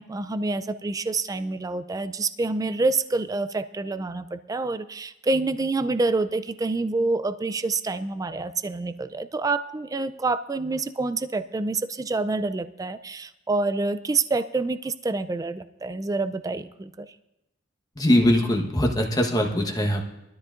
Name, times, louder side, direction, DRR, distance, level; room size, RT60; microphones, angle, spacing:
voice 1, 0.0-17.1, right 3 dB, 20° right, 12 dB, 0.3 m, -27 dB
voice 2, 18.0-20.0, left 1 dB, 20° left, 2 dB, 1.1 m, -21 dB
20.5 x 13.0 x 2.5 m, 0.90 s
head